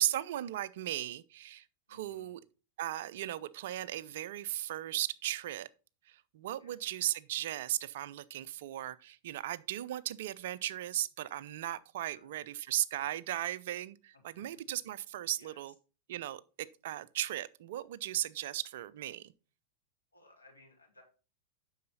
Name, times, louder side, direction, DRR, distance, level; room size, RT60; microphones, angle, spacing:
voice 1, 0.0-2.4 2.8-5.7 6.1-15.7 16.1-16.4 16.8-19.3, right 13 dB, 60° right, 0.6 m, -36 dB
voice 2, 1.9-2.3 6.6-6.9 12.1-12.5 14.1-14.5 15.3-15.7 20.1-21.0, left 2 dB, 90° left, 3.7 m, -61 dB
9.5 x 6.5 x 4.1 m
figure-of-eight pair, 95°, 0 cm